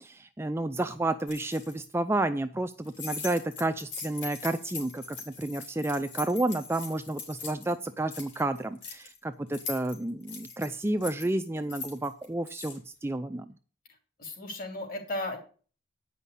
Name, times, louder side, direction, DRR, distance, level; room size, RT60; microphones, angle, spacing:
voice 1, 0.0-13.5, right 2 dB, 10° right, 9 dB, 0.4 m, -31 dB
sound 1, 1.3-1.7 2.8-7.7 8.0-9.2 9.5-12.8, left 4 dB, 65° left, 3.8 m, -41 dB
voice 2, 14.2-15.4, left 1 dB, 45° left, 3 dB, 2.9 m, -35 dB
9.2 x 5.6 x 8.2 m, 0.40 s
head